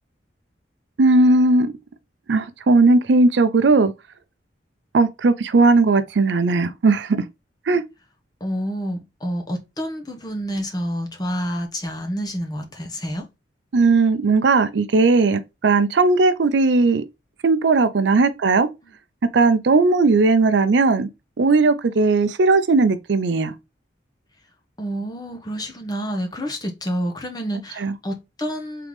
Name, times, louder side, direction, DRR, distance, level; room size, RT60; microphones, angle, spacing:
voice 1, 1.0-1.7 2.3-3.9 4.9-7.2 7.7-7.8 13.7-17.0 17.4-18.7 19.3-21.1 21.4-23.5 27.8-27.9, right 3 dB, 70° right, 0.5 m, -17 dB
voice 2, 8.4-13.3 24.8-28.9, equal, 20° left, 0.8 m, -28 dB
3.8 x 3.5 x 3.1 m
head